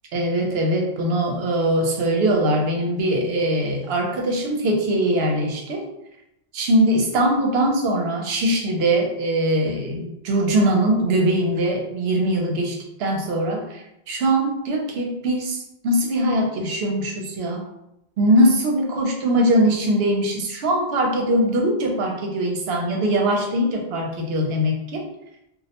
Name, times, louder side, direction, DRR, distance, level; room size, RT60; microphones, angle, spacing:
voice 1, 0.1-5.8 6.5-17.6 18.2-25.0, right 1 dB, 70° right, 1 dB, 0.8 m, -21 dB
2.3 x 2.0 x 2.8 m, 0.84 s
omnidirectional pair, 1.1 m